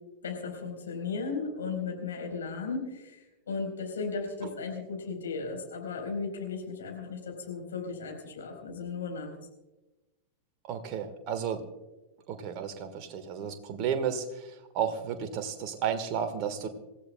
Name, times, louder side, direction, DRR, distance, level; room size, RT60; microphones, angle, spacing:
voice 1, 0.2-9.3, left 4 dB, 65° left, 2 dB, 4.1 m, -36 dB
voice 2, 10.6-11.6 12.3-16.7, right 7 dB, 40° right, 8 dB, 1.5 m, -33 dB
27.0 x 15.0 x 2.2 m, 1.1 s
figure-of-eight pair, 90°, 0 cm